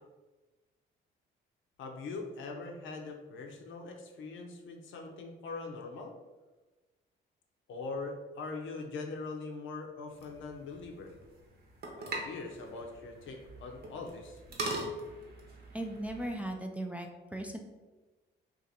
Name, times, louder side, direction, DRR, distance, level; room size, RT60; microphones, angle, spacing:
voice 1, 1.8-6.1 7.7-11.1 11.9-14.4, left 3 dB, 75° left, 2 dB, 0.6 m, -42 dB
sound 1, 10.1-16.5, right 2 dB, 55° right, 0.9 m, -42 dB
voice 2, 15.7-17.6, right 1 dB, 5° right, 2 dB, 0.3 m, -37 dB
2.6 x 2.5 x 4.1 m, 1.2 s
cardioid pair, 90°, 20 cm